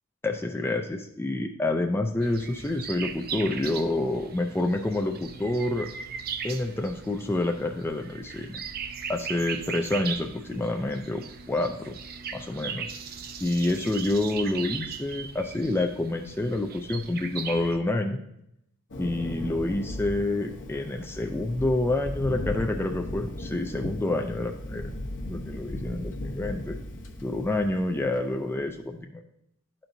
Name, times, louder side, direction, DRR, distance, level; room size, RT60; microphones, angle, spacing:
voice 1, 0.2-5.9 6.4-8.6 9.1-12.0 12.3-13.0 13.4-18.2 19.0-24.8 25.3-26.8 27.2-29.2, left 2 dB, 10° left, 3 dB, 0.4 m, -28 dB
sound 1, 2.2-17.8, right 6 dB, 45° right, 0.5 m, -38 dB
Thunder, 18.9-28.5, left 1 dB, 55° left, 0.9 m, -36 dB
12.0 x 4.4 x 2.6 m, 0.79 s
head